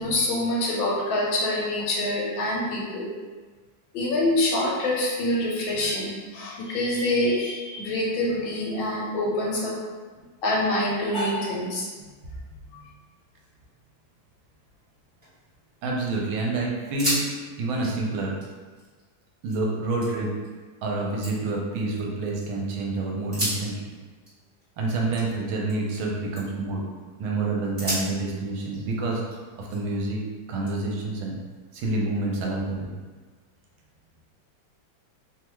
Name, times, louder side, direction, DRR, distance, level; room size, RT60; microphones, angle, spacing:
voice 1, 0.0-3.1 3.9-9.8 10.4-11.9, left 1 dB, 75° left, -4 dB, 1.4 m, -25 dB
sound 1, 15.0-16.0 16.3-16.4 16.8-17.3 17.6-19.6 20.0-20.5 20.9-22.5 23.2-26.0 26.3-26.7 27.2-27.3 27.8-30.0 30.7-31.8, equal, 20° right, 0.9 m, -35 dB
voice 2, 15.8-17.3 17.6-18.3 19.4-20.3 20.8-23.8 24.8-26.8 27.2-29.2 29.5-30.2 30.5-31.4 31.7-32.9, right 2 dB, 80° right, -1 dB, 1.4 m, -28 dB
3.3 x 2.3 x 3.0 m, 1.4 s
omnidirectional pair, 2.2 m